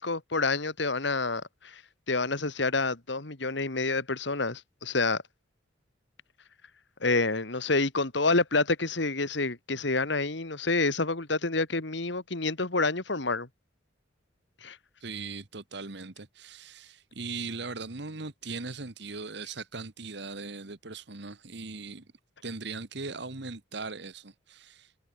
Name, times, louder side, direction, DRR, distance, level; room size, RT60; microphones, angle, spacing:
voice 1, 0.0-1.8 2.1-5.2 7.0-13.5 14.6-14.8, left 3 dB, 65° left, 2.0 m, -28 dB
voice 2, 15.0-22.1 22.4-24.9, right 4 dB, 60° right, 1.5 m, -39 dB
head